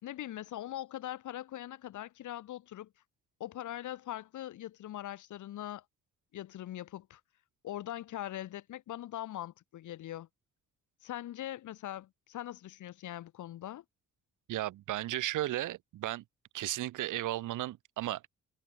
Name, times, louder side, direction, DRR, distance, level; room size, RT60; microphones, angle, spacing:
voice 1, 0.0-2.9 3.4-5.8 6.3-7.2 7.6-10.3 11.0-13.8, left 13 dB, 80° left, 3.7 m, -41 dB
voice 2, 14.5-16.2 16.5-18.3, right 15 dB, 85° right, 2.4 m, -35 dB
cardioid pair, 90°, 30 cm